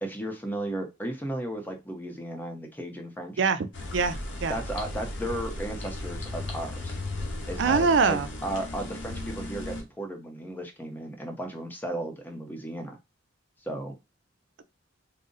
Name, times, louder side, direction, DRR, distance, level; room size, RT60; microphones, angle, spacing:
voice 1, 0.0-3.4 4.5-7.0 7.5-13.0 13.6-13.9, right 1 dB, 10° left, 0.6 m, -35 dB
voice 2, 3.4-4.6 7.6-8.3, right 5 dB, 65° right, 0.4 m, -24 dB
sound 1, 3.7-9.8, left 2 dB, 65° left, 1.0 m, -36 dB
3.8 x 2.0 x 3.8 m
head